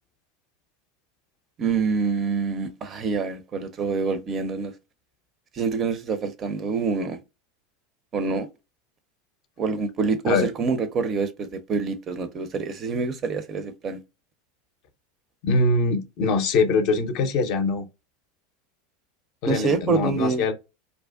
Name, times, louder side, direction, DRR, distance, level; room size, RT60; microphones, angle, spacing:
voice 1, 1.6-4.7 5.5-7.2 8.1-8.5 9.6-14.0 19.5-20.4, right 4 dB, 35° right, 0.4 m, -26 dB
voice 2, 15.4-17.8 19.4-20.5, left 3 dB, 50° left, 0.4 m, -23 dB
2.5 x 2.1 x 2.3 m
figure-of-eight pair, 80°, 0 cm